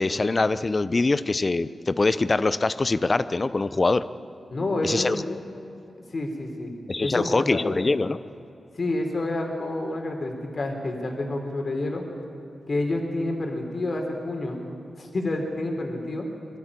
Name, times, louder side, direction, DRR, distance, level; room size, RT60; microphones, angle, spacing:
voice 1, 0.0-4.0 4.8-5.4 6.9-8.2, left 3 dB, 40° left, 14 dB, 0.8 m, -23 dB
voice 2, 4.5-5.2 6.1-7.6 8.8-12.0 12.7-14.6 15.0-16.3, left 2 dB, 55° left, 2 dB, 3.5 m, -28 dB
23.0 x 13.0 x 9.8 m, 2.7 s
cardioid pair, 45°, 0 cm